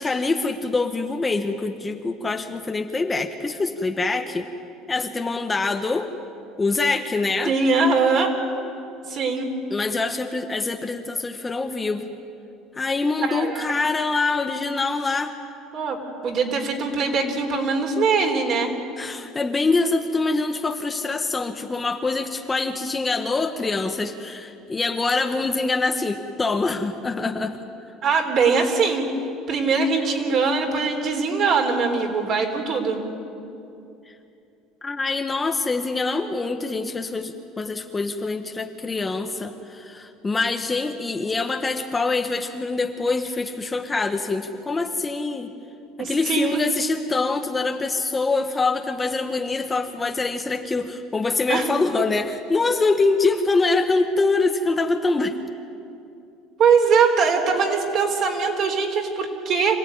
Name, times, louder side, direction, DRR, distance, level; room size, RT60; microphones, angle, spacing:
voice 1, 0.0-4.5 4.9-6.1 6.6-7.5 9.7-12.1 12.8-15.3 19.0-27.6 34.1-34.2 34.8-45.5 46.0-55.4, left 3 dB, 15° left, 6 dB, 1.0 m, -24 dB
voice 2, 7.4-8.4 9.1-9.5 13.2-13.7 15.7-16.0 16.2-18.7 28.0-29.1 29.5-33.0 46.0-46.6 51.5-51.7 56.6-59.8, right 5 dB, 45° right, 3 dB, 3.7 m, -21 dB
25.5 x 16.5 x 9.8 m, 2.7 s
cardioid pair, 140°, 0 cm